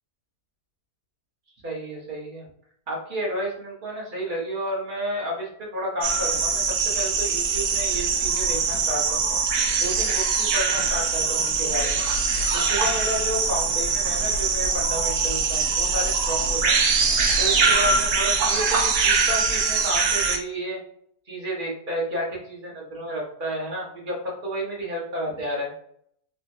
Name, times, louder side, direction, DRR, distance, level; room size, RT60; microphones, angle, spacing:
voice 1, 1.6-2.5 2.9-9.4 9.8-12.0 12.5-16.7 17.4-20.8 21.3-25.7, equal, 35° right, -4 dB, 1.1 m, -31 dB
sound 1, 6.0-20.4, right 4 dB, 75° right, 1.2 m, -23 dB
3.4 x 2.9 x 2.7 m, 0.68 s
omnidirectional pair, 1.8 m